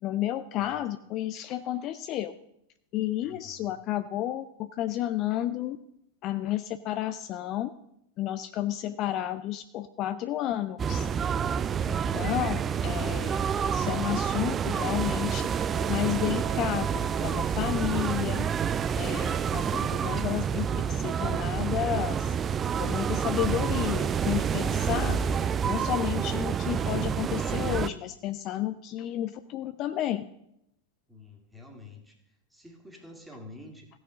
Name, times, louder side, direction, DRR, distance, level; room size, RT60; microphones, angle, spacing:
voice 1, 0.0-2.3 2.9-5.8 6.2-7.7 8.2-11.1 11.9-16.9 17.2-18.5 19.0-22.4 22.8-25.2 25.6-30.2, left 13 dB, 35° left, 11 dB, 0.4 m, -31 dB
voice 2, 3.2-3.7 31.1-33.9, left 2 dB, 5° right, 1 dB, 2.2 m, -49 dB
sound 1, 10.8-27.9, right 7 dB, 25° right, 0.4 m, -28 dB
16.0 x 6.4 x 5.0 m, 0.79 s
figure-of-eight pair, 90°, 0 cm